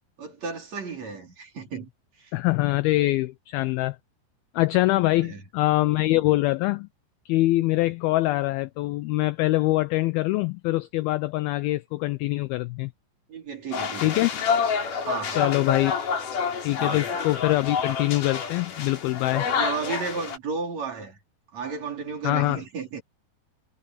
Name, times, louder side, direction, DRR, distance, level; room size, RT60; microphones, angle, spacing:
voice 1, 0.2-2.3 5.1-5.4 13.3-14.2 15.0-15.9 16.8-17.1 19.4-21.2 21.5-23.0, right 5 dB, 40° right, 4.6 m, -34 dB
voice 2, 2.3-4.0 4.5-6.9 7.3-12.9 14.0-14.3 15.4-16.0 16.6-19.5 22.2-22.6, left 18 dB, 85° left, 2.2 m, -24 dB
sound 1, 13.7-20.4, left 6 dB, 50° left, 4.2 m, -28 dB
omnidirectional pair, 5.0 m